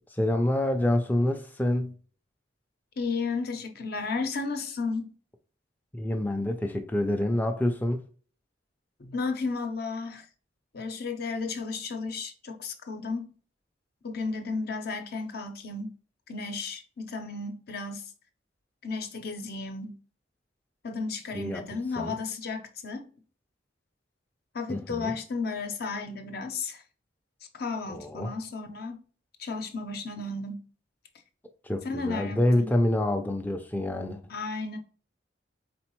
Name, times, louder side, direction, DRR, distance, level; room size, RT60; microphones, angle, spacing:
voice 1, 0.1-1.9 5.9-8.0 21.3-21.6 22.0-22.1 24.7-25.2 27.9-28.3 31.6-34.2, left 1 dB, 10° left, 0.4 m, -27 dB
voice 2, 3.0-5.1 9.0-10.2 10.7-13.3 14.0-15.9 16.3-18.0 18.8-20.0 20.8-23.1 24.5-26.8 27.6-29.0 29.4-30.6 31.8-32.7 34.3-34.8, left 4 dB, 60° left, 0.7 m, -33 dB
4.1 x 3.9 x 3.0 m
head